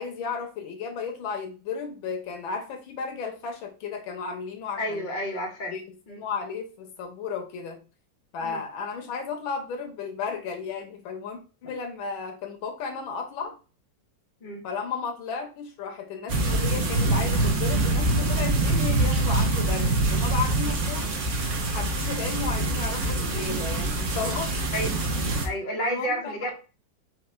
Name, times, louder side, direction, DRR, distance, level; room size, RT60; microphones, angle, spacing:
voice 1, 0.0-5.1 5.7-5.8 6.2-7.8 8.3-13.6 14.6-21.1 21.6-24.5 25.2-25.4 25.8-26.5, left 5 dB, 80° left, 4 dB, 1.7 m, -34 dB
voice 2, 4.8-5.7 6.1-6.2 8.4-8.6 14.4-14.6 24.7-24.9 25.4-26.5, equal, 30° left, 0 dB, 1.0 m, -30 dB
sound 1, 16.3-25.5, right 2 dB, 55° right, 0.9 m, -25 dB
4.9 x 2.4 x 4.3 m, 0.34 s
omnidirectional pair, 2.1 m